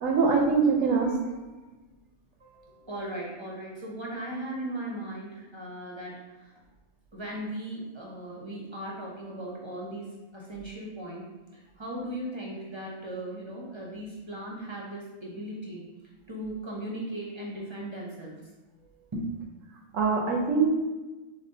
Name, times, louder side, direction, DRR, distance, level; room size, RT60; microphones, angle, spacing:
voice 1, 0.0-1.4 19.9-20.8, right 4 dB, 75° right, 0 dB, 1.0 m, -24 dB
voice 2, 2.4-6.5 7.1-11.3 11.5-15.8 16.3-18.4 19.1-19.4, right 1 dB, 30° right, -3 dB, 0.6 m, -37 dB
6.7 x 2.4 x 2.7 m, 1.2 s
omnidirectional pair, 1.4 m